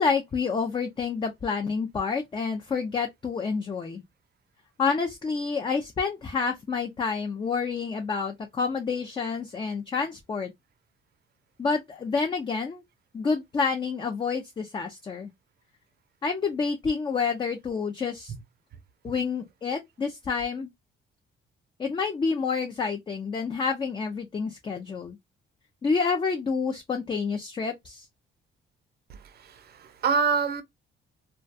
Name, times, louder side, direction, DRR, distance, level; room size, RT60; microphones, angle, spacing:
voice 1, 0.0-4.0 4.8-10.5 11.6-12.8 13.1-15.3 16.2-18.3 19.0-20.7 21.8-25.2 25.8-28.1, left 5 dB, 25° left, 0.4 m, -28 dB
voice 2, 29.1-30.6, right 5 dB, 55° right, 0.6 m, -27 dB
2.2 x 2.2 x 2.5 m
cardioid pair, 90°, 20 cm